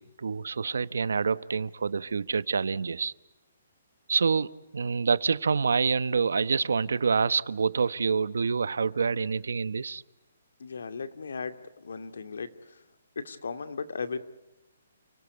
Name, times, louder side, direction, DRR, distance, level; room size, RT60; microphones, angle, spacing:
voice 1, 0.0-3.1 4.1-10.0, right 5 dB, 85° right, 17 dB, 1.0 m, -27 dB
voice 2, 10.6-12.8 13.2-14.2, left 5 dB, 80° left, 9 dB, 2.2 m, -36 dB
30.0 x 19.0 x 8.2 m, 1.0 s
hypercardioid pair, 175°, 0 cm